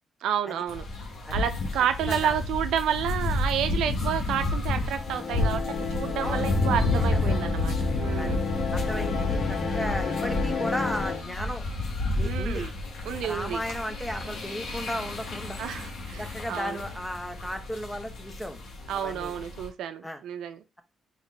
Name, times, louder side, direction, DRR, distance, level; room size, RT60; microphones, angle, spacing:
voice 1, 0.2-0.9 1.3-8.4 12.2-12.7 13.1-13.6 15.6-16.8 18.9-20.6, right 9 dB, 85° right, 0.4 m, -30 dB
sound 1, 0.7-19.7, left 2 dB, 80° left, 1.4 m, -30 dB
sound 2, 4.9-11.2, left 5 dB, 60° left, 1.0 m, -32 dB
voice 2, 7.0-7.4 8.2-8.4 8.7-11.6 12.2-12.7 13.2-15.6 16.2-18.6 18.9-19.4 20.0-20.2, equal, 10° left, 0.8 m, -35 dB
4.0 x 3.0 x 3.2 m
cardioid pair, 90°, 0 cm